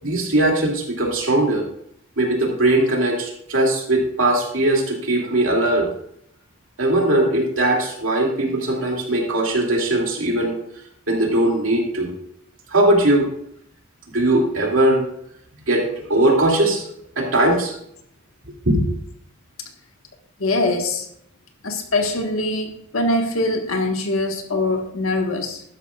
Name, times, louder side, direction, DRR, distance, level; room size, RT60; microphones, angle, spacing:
voice 1, 0.0-1.6 2.2-5.9 6.8-10.6 11.1-12.1 12.7-13.3 14.1-15.0 15.7-16.8 17.2-17.7 18.7-18.8, right 1 dB, 75° right, 0 dB, 2.6 m, -19 dB
voice 2, 20.4-21.1 21.6-25.6, left 2 dB, 85° left, 4 dB, 1.6 m, -23 dB
12.5 x 11.0 x 2.5 m, 0.71 s
head